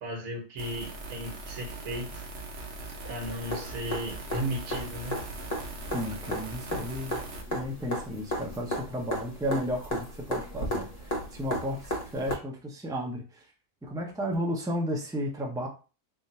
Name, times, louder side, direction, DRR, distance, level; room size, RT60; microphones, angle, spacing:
voice 1, 0.0-2.2 3.0-5.2, equal, 75° right, 0 dB, 1.4 m, -35 dB
sound 1, 0.6-7.4, right 2 dB, 50° right, 1.0 m, -41 dB
sound 2, 3.2-12.3 14.3-14.4, equal, 30° left, 0.8 m, -35 dB
voice 2, 5.9-7.2 7.5-13.5 13.8-15.7, equal, 5° right, 0 dB, 0.3 m, -33 dB
3.6 x 2.6 x 4.2 m, 0.34 s
omnidirectional pair, 1.6 m